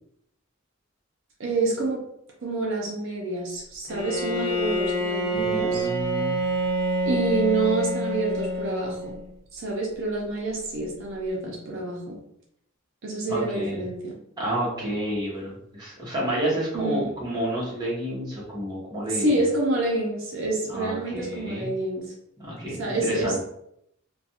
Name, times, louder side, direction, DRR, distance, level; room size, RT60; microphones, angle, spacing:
voice 1, 1.4-2.0 2.4-5.9 7.1-9.1 9.5-12.2 13.0-14.2 16.7-17.1 19.1-22.1 22.8-23.3, right 2 dB, 65° right, -2 dB, 0.6 m, -27 dB
Bowed string instrument, 3.9-9.3, equal, 15° left, 0.8 m, -27 dB
voice 2, 5.3-6.4 13.3-13.8 14.4-19.4 20.7-21.7 22.4-23.4, right 1 dB, 20° right, -6 dB, 0.9 m, -30 dB
2.4 x 2.2 x 2.7 m, 0.75 s
head